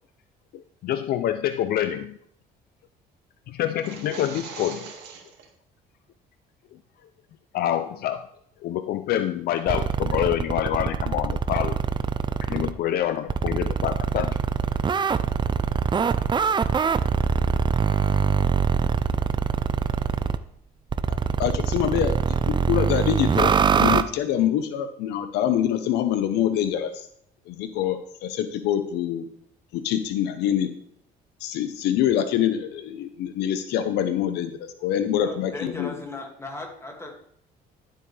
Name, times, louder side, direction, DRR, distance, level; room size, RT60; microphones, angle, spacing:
voice 1, 0.5-2.2 3.5-4.9 7.5-8.3 8.6-11.8 12.4-14.4, left 11 dB, 65° left, 10 dB, 0.5 m, -26 dB
sound 1, 3.7-5.5, right 6 dB, 80° right, 2.1 m, -40 dB
sound 2, 9.7-12.7 13.3-20.4 20.9-24.0, right 6 dB, 25° right, 0.5 m, -23 dB
voice 2, 21.1-22.1 22.5-23.5 23.8-27.0 27.5-29.3 29.7-30.7 31.4-35.9, left 10 dB, 85° left, 10 dB, 0.9 m, -25 dB
voice 3, 35.2-37.1, left 2 dB, 15° left, 1 dB, 2.2 m, -37 dB
12.0 x 7.6 x 3.3 m, 0.67 s
cardioid pair, 110°, 17 cm